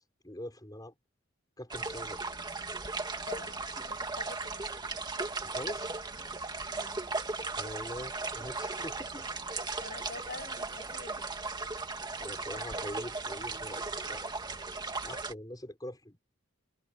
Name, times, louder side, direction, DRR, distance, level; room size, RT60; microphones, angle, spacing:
voice 1, 0.2-0.9 1.6-2.2 5.4-6.0 7.5-9.3 12.2-14.3 15.0-16.2, left 1 dB, 20° left, 6.0 m, -43 dB
sound 1, 1.7-15.3, right 3 dB, 20° right, 2.1 m, -37 dB
voice 2, 3.3-4.7 6.7-7.1 9.8-11.4, left 3 dB, 50° left, 6.3 m, -47 dB
head